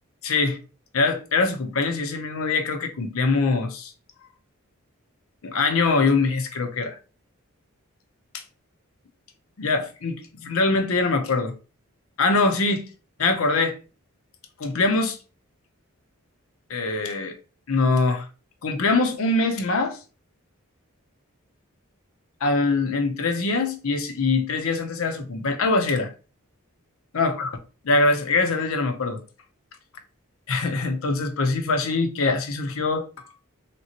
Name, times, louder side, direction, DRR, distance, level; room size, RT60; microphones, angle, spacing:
voice 1, 0.2-0.6 0.9-3.9 5.4-7.0 8.3-8.4 9.6-11.5 12.2-12.8 13.2-13.8 14.6-15.2 16.7-17.3 17.7-18.3 18.6-20.0 22.4-26.1 27.1-27.6 27.8-29.2 30.5-33.3, left 3 dB, 70° left, 0.6 m, -23 dB
3.3 x 2.9 x 2.8 m
head